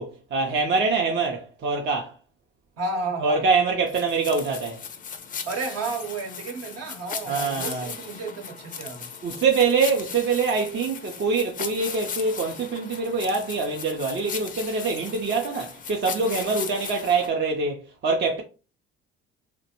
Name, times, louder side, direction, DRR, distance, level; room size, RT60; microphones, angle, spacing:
voice 1, 0.0-2.2 3.2-4.8 7.3-7.9 9.2-18.4, right 4 dB, 40° right, 0.6 m, -24 dB
voice 2, 2.8-3.4 5.5-9.1, right 3 dB, 55° right, 1.0 m, -32 dB
sound 1, 3.9-17.3, left 6 dB, 30° left, 0.4 m, -37 dB
2.4 x 2.1 x 2.9 m
hypercardioid pair, 65°, 29 cm